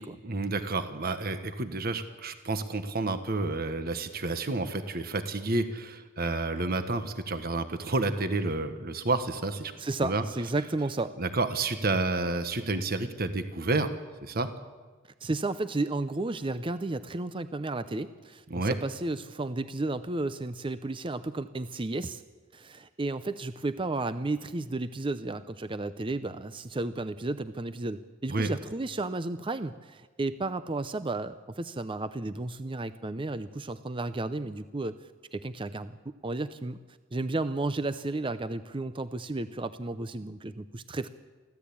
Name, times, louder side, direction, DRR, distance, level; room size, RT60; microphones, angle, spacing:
voice 1, 0.2-9.7 10.0-10.2 11.2-13.9 14.2-14.5 18.5-18.8 28.3-28.5, right 2 dB, 50° right, 9 dB, 1.3 m, -30 dB
voice 2, 9.8-11.1 15.2-22.2 22.5-35.0 35.3-36.8 37.1-41.1, right 2 dB, 25° right, 12 dB, 0.6 m, -33 dB
24.5 x 15.5 x 8.5 m, 1.4 s
head